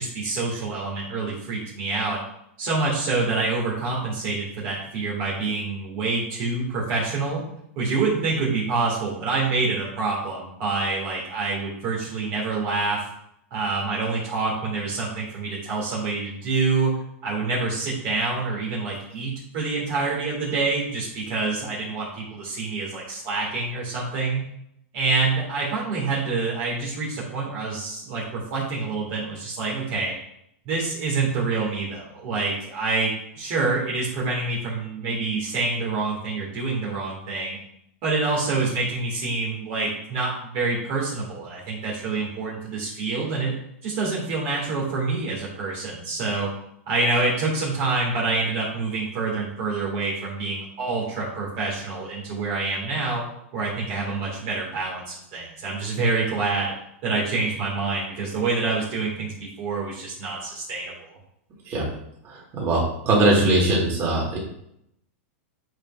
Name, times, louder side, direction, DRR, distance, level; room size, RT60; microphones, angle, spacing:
voice 1, 0.0-2.2 2.6-7.4 7.8-13.0 13.5-24.5 24.9-30.1 30.7-33.1 33.4-37.6 38.0-43.5 43.8-46.5 46.9-53.2 53.5-56.7 57.0-61.2, right 3 dB, 50° right, -5 dB, 2.0 m, -26 dB
voice 2, 62.2-64.4, right 2 dB, 35° right, -4 dB, 2.6 m, -21 dB
8.8 x 5.3 x 2.5 m, 0.75 s
hypercardioid pair, 130°, 7 cm